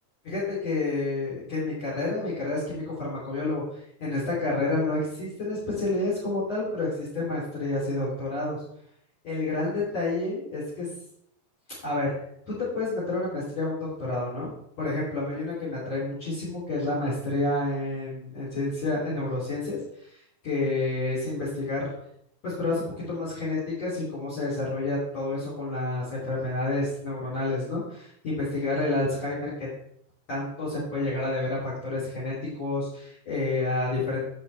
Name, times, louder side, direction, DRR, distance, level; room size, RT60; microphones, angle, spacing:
voice 1, 0.3-8.6 9.2-10.9 11.8-12.1 12.5-19.8 20.4-21.9 22.4-29.7 30.3-34.2, left 2 dB, 45° left, -5 dB, 4.2 m, -29 dB
16.5 x 6.1 x 3.4 m, 0.70 s
omnidirectional pair, 4.6 m